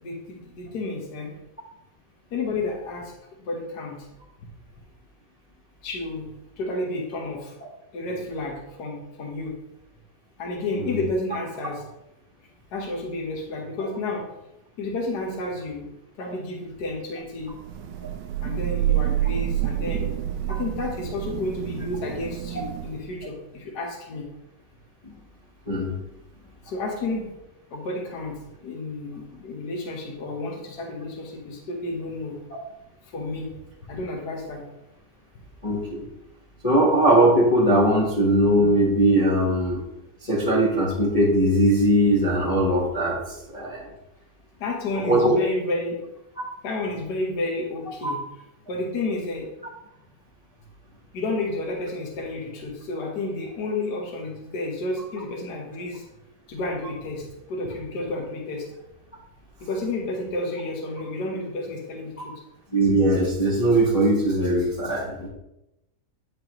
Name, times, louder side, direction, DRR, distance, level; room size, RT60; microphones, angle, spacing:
voice 1, 0.0-1.3 2.3-3.1 3.4-4.1 5.8-6.3 6.6-7.5 7.9-9.5 10.4-11.8 12.7-14.2 14.8-15.9 16.2-17.5 18.4-20.1 20.5-24.2 26.6-27.3 27.7-28.4 28.6-32.3 33.0-33.5 33.9-34.6 44.6-46.0 46.6-48.2 48.7-49.5 51.1-56.0 56.5-58.7 59.6-62.3, left 2 dB, 65° left, 0 dB, 1.6 m, -31 dB
Thunder / Rain, 17.5-23.2, right 12 dB, 80° right, 1.2 m, -28 dB
voice 2, 25.7-26.0 35.6-36.0 36.6-39.8 40.2-43.2 43.5-43.9 45.1-45.4 48.0-48.1 62.7-65.3, right 1 dB, 25° left, -6 dB, 1.0 m, -20 dB
8.7 x 5.3 x 3.0 m, 0.91 s
omnidirectional pair, 1.9 m